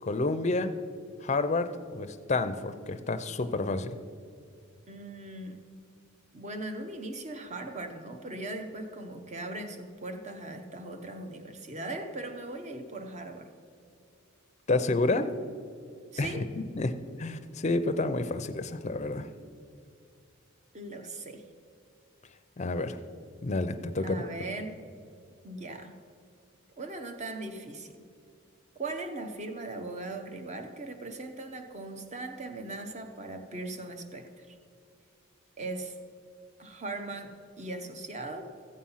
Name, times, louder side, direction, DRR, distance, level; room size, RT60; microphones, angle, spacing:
voice 1, 0.0-0.7 1.2-4.0 14.7-15.3 16.2-16.4 16.8-16.9 17.2-19.3 22.6-23.0 23.4-24.2, left 2 dB, 35° left, 9 dB, 0.5 m, -29 dB
voice 2, 4.9-5.6 6.3-13.5 16.1-16.5 20.7-21.4 24.0-24.8 25.4-26.0 26.8-28.0 28.8-34.6 35.6-36.0 36.6-38.4, right 2 dB, 35° right, 7 dB, 0.8 m, -39 dB
14.5 x 7.4 x 5.6 m, 2.4 s
head